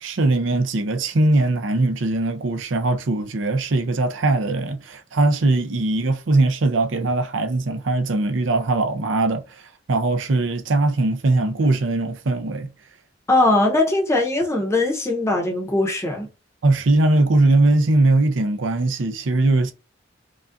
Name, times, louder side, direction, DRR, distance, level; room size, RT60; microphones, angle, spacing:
voice 1, 0.0-12.7 16.6-19.7, right 2 dB, 70° right, 0.6 m, -20 dB
voice 2, 13.3-16.3, left 2 dB, 15° left, 0.8 m, -20 dB
5.0 x 2.3 x 2.5 m
head